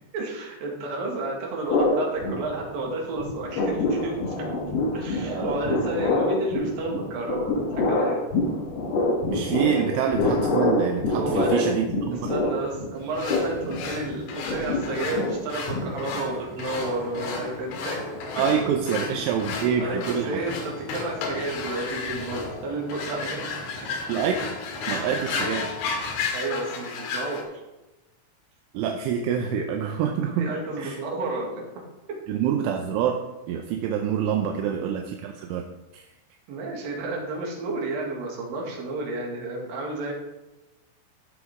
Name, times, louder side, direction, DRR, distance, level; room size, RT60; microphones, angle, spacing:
voice 1, 0.1-4.6 4.9-8.2 9.7-9.8 11.1-11.7 12.1-18.2 18.9-19.0 19.8-23.5 23.8-23.9 26.3-27.5 30.4-31.6 34.5-34.6 36.5-40.1, right 2 dB, 55° right, -2 dB, 3.3 m, -31 dB
sound 1, 1.7-2.9 3.2-16.4, left 2 dB, 60° left, 3.0 m, -26 dB
voice 2, 5.2-5.6 5.9-6.0 9.3-12.3 18.4-20.4 24.1-24.5 24.9-25.8 28.7-31.0 32.3-33.2 33.5-35.6 35.9-36.1, right 8 dB, 80° right, 3 dB, 3.1 m, -26 dB
sound 2, 13.2-27.4, left 4 dB, 80° left, 3.9 m, -33 dB
sound 3, 16.1-26.3, equal, 25° left, 2.6 m, -43 dB
15.0 x 7.1 x 3.7 m, 1.0 s
omnidirectional pair, 5.7 m